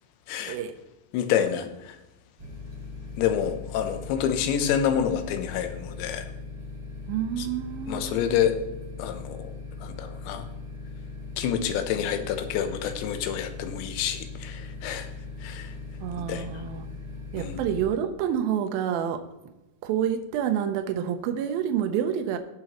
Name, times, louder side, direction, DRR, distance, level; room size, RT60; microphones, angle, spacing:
voice 1, 0.3-0.6 1.1-2.0 3.2-6.2 7.4-7.5 7.9-8.6 9.0-9.5 9.8-10.5 11.4-15.1 15.4-15.7 16.3-16.5 17.4-17.6, left 9 dB, 90° left, 8 dB, 3.1 m, -28 dB
sound 1, 2.4-17.8, left 3 dB, 15° right, 2.9 m, -39 dB
voice 2, 7.1-8.4 16.0-16.9 17.3-19.3 19.8-22.4, right 9 dB, 80° right, 7 dB, 2.1 m, -28 dB
17.0 x 6.2 x 3.0 m, 0.98 s
omnidirectional pair, 5.0 m